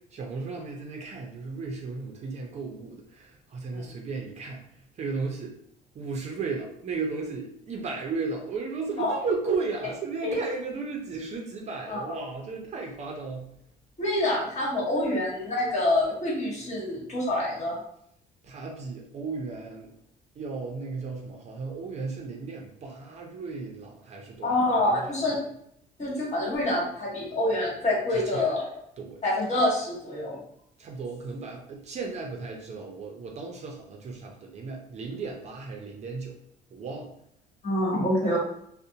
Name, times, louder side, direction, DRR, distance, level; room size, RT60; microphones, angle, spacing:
voice 1, 0.1-4.6 5.0-5.5 6.0-13.5 18.4-19.9 20.4-25.0 28.1-28.5 29.0-29.2 30.8-36.3 36.7-37.1, right 4 dB, 40° right, 0 dB, 0.5 m, -35 dB
voice 2, 14.0-17.8 24.4-25.3 26.0-28.6 29.2-30.4 37.6-38.4, left 1 dB, 40° left, -5 dB, 1.3 m, -26 dB
2.5 x 2.1 x 2.7 m, 0.72 s
cardioid pair, 110°, 17 cm